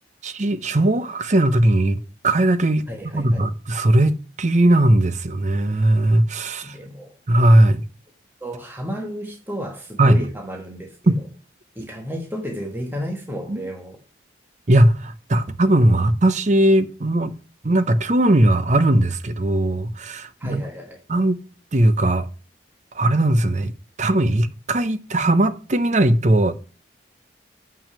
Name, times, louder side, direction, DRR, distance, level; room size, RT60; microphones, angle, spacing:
voice 1, 0.2-2.8 3.1-6.8 7.3-7.8 10.0-10.2 11.1-11.2 13.5-13.6 14.7-17.3 17.6-20.6 21.1-21.4 21.7-22.3 22.9-23.7 24.0-26.5, right 1 dB, 40° right, 0.7 m, -18 dB
voice 2, 2.9-3.5 6.6-7.1 8.4-11.2 11.7-14.0 20.4-21.0, equal, 10° right, 1.3 m, -32 dB
7.1 x 6.0 x 6.8 m
head